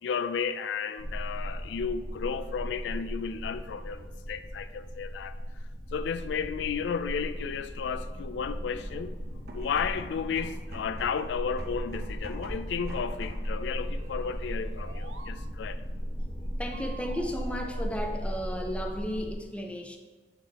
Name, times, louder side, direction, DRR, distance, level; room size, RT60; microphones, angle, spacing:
voice 1, 0.0-5.3 5.9-9.2 9.5-15.8, left 6 dB, 85° left, 12 dB, 0.3 m, -33 dB
sound 1, 1.0-19.3, equal, 35° left, 1.0 m, -37 dB
sound 2, 9.3-13.6, right 1 dB, 65° right, 0.8 m, -46 dB
sound 3, 13.6-15.4 16.7-18.8, right 4 dB, 85° right, 0.5 m, -50 dB
voice 2, 16.6-20.0, equal, 5° left, 3 dB, 0.6 m, -34 dB
8.0 x 3.9 x 4.0 m, 1.3 s
head